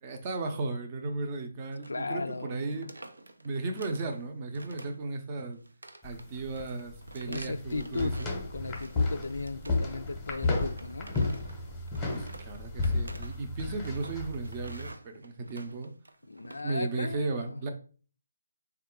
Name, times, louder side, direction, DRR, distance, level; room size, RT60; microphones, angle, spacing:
voice 1, 0.0-2.9 3.4-5.6 6.0-8.3 12.0-15.9 16.6-17.7, right 3 dB, 30° right, 0.6 m, -35 dB
sound 1, 1.8-2.1 2.3-2.5 2.7-4.2 4.5-5.1 5.4-8.4 8.7-10.0 10.4-16.6, right 2 dB, 85° right, 0.5 m, -49 dB
voice 2, 1.9-2.9 7.3-8.2 8.5-11.1 16.2-17.6, left 3 dB, 80° left, 0.3 m, -36 dB
sound 2, 6.0-14.9, left 3 dB, 10° left, 0.8 m, -33 dB
3.6 x 2.3 x 3.6 m
figure-of-eight pair, 150°, 0 cm